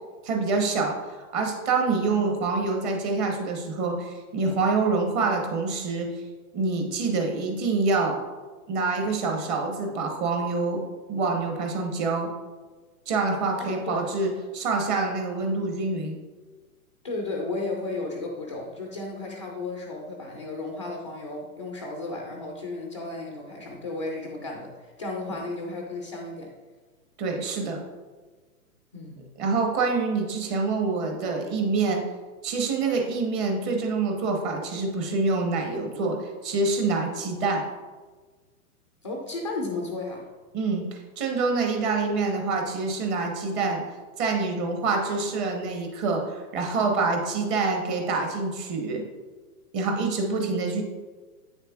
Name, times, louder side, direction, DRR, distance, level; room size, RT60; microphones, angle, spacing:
voice 1, 0.2-6.1 6.5-8.2 8.7-10.8 11.1-12.3 13.1-16.2 27.2-27.8 29.4-32.0 32.4-37.6 40.5-43.8 44.2-49.0 49.7-50.8, right 3 dB, 30° right, 2 dB, 1.1 m, -26 dB
voice 2, 13.6-14.0 17.0-26.5 28.9-29.2 39.0-40.3, left 2 dB, 25° left, 1 dB, 0.3 m, -34 dB
8.5 x 6.5 x 2.4 m, 1.3 s
hypercardioid pair, 140°, 45 cm